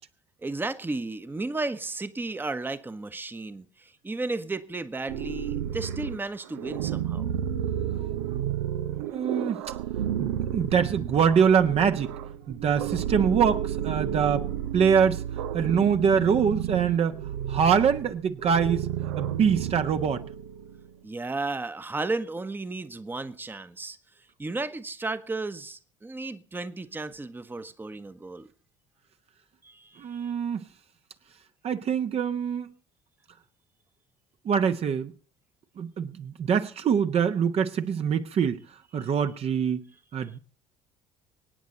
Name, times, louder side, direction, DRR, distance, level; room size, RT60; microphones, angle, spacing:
voice 1, 0.4-7.3 21.0-24.0 24.4-28.5 29.6-30.3 40.2-40.3, right 3 dB, 15° right, 1.1 m, -34 dB
sound 1, 5.1-20.9, right 10 dB, 65° right, 0.8 m, -32 dB
voice 2, 9.1-9.6 10.2-12.1 12.5-14.4 14.7-15.2 15.5-17.2 17.5-18.9 19.2-20.2 30.0-30.6 31.6-32.7 34.4-35.1 35.8-38.6 38.9-40.4, right 7 dB, 40° right, 1.1 m, -24 dB
24.5 x 9.6 x 4.0 m
figure-of-eight pair, 55°, 16 cm